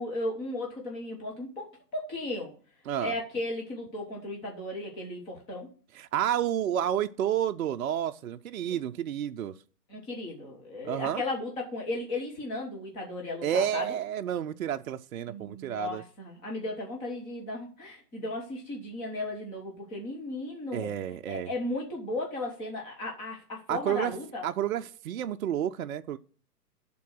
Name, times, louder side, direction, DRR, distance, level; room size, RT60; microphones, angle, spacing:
voice 1, 0.0-2.5 3.0-5.7 8.7-8.8 9.9-13.9 15.3-20.9 21.3-24.4, left 2 dB, 10° left, 0.9 m, -35 dB
voice 2, 5.9-9.6 10.8-11.2 13.4-16.0 20.7-21.5 23.7-24.1 24.4-26.2, right 10 dB, 60° right, 0.6 m, -30 dB
11.5 x 3.8 x 6.0 m
hypercardioid pair, 160°, 48 cm